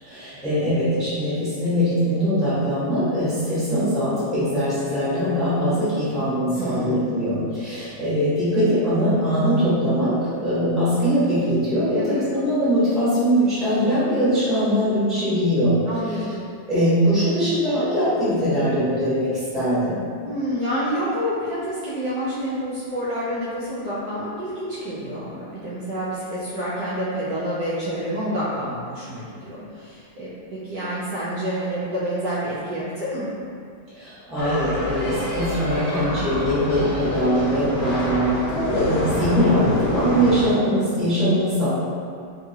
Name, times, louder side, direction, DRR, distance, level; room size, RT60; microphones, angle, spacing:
voice 1, 0.0-15.8 16.1-16.2 16.7-19.9 33.9-41.7, equal, ahead, -13 dB, 0.9 m, -22 dB
voice 2, 6.5-7.1 11.9-12.2 15.9-16.3 20.2-33.3, equal, 70° right, -10 dB, 1.1 m, -28 dB
sound 1, 34.4-40.5, left 1 dB, 65° left, 1.0 m, -27 dB
2.9 x 2.9 x 2.7 m, 2.2 s
omnidirectional pair, 2.1 m